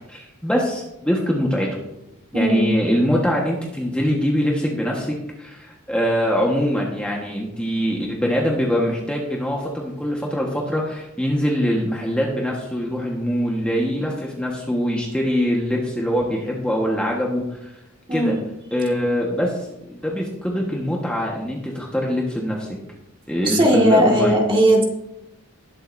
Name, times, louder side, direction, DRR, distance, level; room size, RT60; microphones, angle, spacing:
voice 1, 0.1-1.7 2.3-17.7 18.1-18.3 18.7-22.8 23.3-24.3, equal, 5° left, -2 dB, 1.3 m, -23 dB
voice 2, 2.3-2.7 18.1-18.4 23.4-24.8, equal, 25° right, 0 dB, 1.9 m, -17 dB
19.5 x 7.7 x 2.6 m, 0.88 s
head